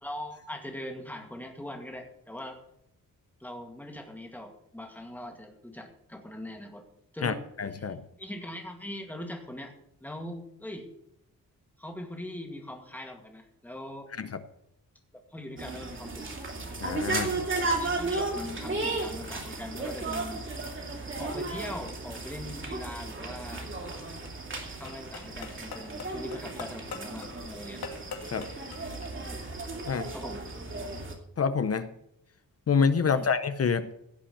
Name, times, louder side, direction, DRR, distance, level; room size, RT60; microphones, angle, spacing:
voice 1, 0.0-2.6 3.4-6.8 7.1-7.4 7.8-9.7 10.0-10.9 11.8-14.1 15.1-16.3 17.7-20.4 21.2-23.7 24.8-27.8 29.2-29.4 30.1-30.4 33.1-33.3, left 1 dB, 5° left, 3 dB, 2.1 m, -41 dB
voice 2, 7.2-8.0 14.2-14.4 16.8-17.3 28.3-28.5 29.9-30.1 31.4-31.9 32.7-33.9, left 5 dB, 40° left, 11 dB, 0.7 m, -27 dB
sound 1, 15.6-31.1, right 3 dB, 35° right, 2.9 m, -35 dB
sound 2, 23.3-29.1, left 5 dB, 85° left, 2.2 m, -44 dB
16.5 x 5.7 x 8.5 m, 0.76 s
wide cardioid pair, 155°, 36 cm